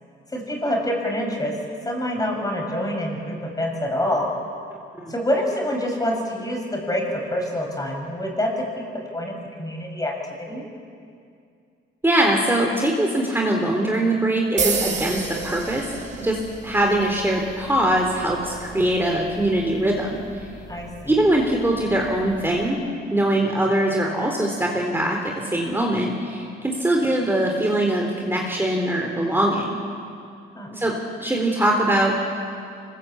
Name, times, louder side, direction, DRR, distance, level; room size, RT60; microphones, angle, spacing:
voice 1, 0.3-1.5 1.9-4.3 5.1-8.9 9.1-10.1 10.4-10.6 20.7-21.2 30.6-30.7, left 1 dB, 20° left, 1 dB, 6.9 m, -26 dB
voice 2, 12.0-15.9 16.2-16.4 16.6-20.2 21.1-22.8 23.1-29.8 30.7-30.9 31.2-32.1, right 1 dB, 10° right, 0 dB, 3.7 m, -22 dB
sound 1, 14.6-22.7, right 4 dB, 40° right, 5.3 m, -33 dB
25.5 x 21.0 x 8.6 m, 2.4 s
cardioid pair, 90°, 20 cm